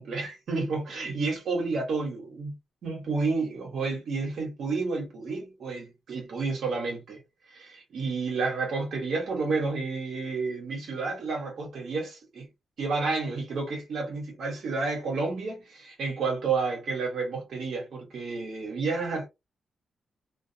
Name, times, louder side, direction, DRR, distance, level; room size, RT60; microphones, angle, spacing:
voice 1, 0.0-2.6 2.8-7.2 7.5-12.5 12.8-19.3, right 4 dB, 75° right, 1.1 m, -30 dB
2.3 x 2.3 x 2.7 m
cardioid pair, 85°, 0 cm